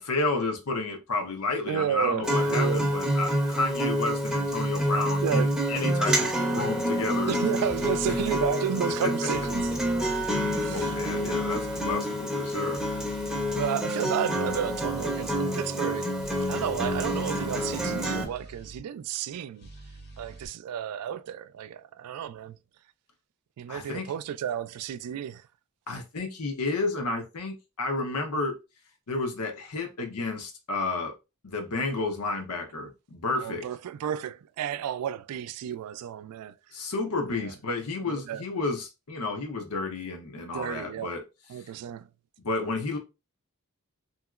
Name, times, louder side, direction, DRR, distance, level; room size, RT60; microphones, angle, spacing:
voice 1, 0.0-7.4 8.1-8.2 9.0-9.3 10.1-12.8 23.7-24.1 25.9-28.6 29.1-31.1 31.4-33.6 36.7-41.2 42.4-43.0, left 3 dB, 85° left, 0.8 m, -31 dB
voice 2, 1.7-2.9 5.2-6.0 7.2-9.7 10.5-11.4 13.5-16.1 16.4-19.7 20.2-22.6 23.6-25.4 33.4-36.5 37.3-37.5 38.0-38.4 40.5-41.1 41.5-42.1, right 9 dB, 85° right, 0.3 m, -32 dB
Acoustic guitar, 2.2-18.2, equal, 5° right, 0.6 m, -28 dB
sound 1, 7.6-8.5 9.3-12.0 12.8-13.7 14.5-15.4 16.2-18.8 19.6-20.5, equal, 50° left, 0.8 m, -45 dB
2.9 x 2.9 x 2.4 m
head